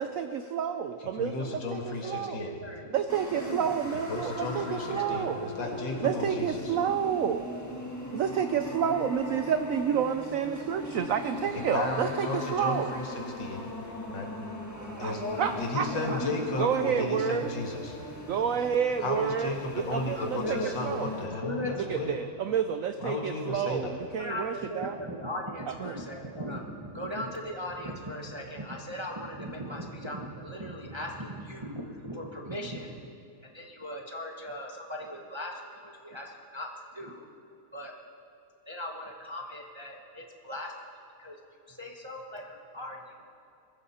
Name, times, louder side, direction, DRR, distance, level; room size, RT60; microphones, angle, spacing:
voice 1, 0.0-2.4 2.9-5.5 6.0-7.5 8.1-12.9 14.8-16.2 16.6-17.5 18.3-21.1 21.8-25.0 25.7-26.0, right 8 dB, 85° right, 9 dB, 0.7 m, -30 dB
voice 2, 1.1-2.5 3.9-6.8 11.5-13.7 14.1-14.3 15.0-15.2 15.6-18.0 19.0-22.2 23.0-23.9, left 3 dB, 70° left, 1 dB, 2.5 m, -34 dB
voice 3, 2.0-2.9 3.3-3.7 4.9-5.3 7.3-7.7 11.1-11.2 13.8-14.0 14.9-16.6 16.9-17.0 20.1-22.1 24.1-33.1 33.5-37.2 37.7-37.9 38.7-40.7 41.2-41.4 41.7-43.0, equal, 20° right, 1 dB, 0.8 m, -38 dB
sound 1, 3.1-21.3, left 1 dB, 10° left, 1.4 m, -39 dB
21.5 x 15.0 x 4.3 m, 2.6 s
omnidirectional pair, 2.1 m